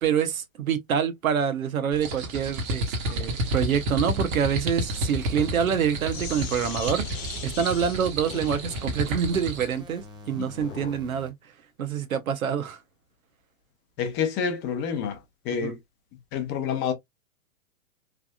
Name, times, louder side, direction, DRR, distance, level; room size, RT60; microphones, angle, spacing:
voice 1, 0.0-12.8 15.5-15.7, right 8 dB, 90° right, 0.8 m, -27 dB
sound 1, 1.9-9.8, right 1 dB, 40° right, 1.1 m, -31 dB
Sink (filling or washing), 3.0-11.1, left 7 dB, 65° left, 1.0 m, -41 dB
sound 2, 4.9-7.9 8.3-11.3, equal, 10° right, 0.5 m, -47 dB
voice 2, 14.0-15.8 16.3-16.9, left 7 dB, 25° left, 0.7 m, -28 dB
3.3 x 2.4 x 2.2 m
hypercardioid pair, 125°, 40 cm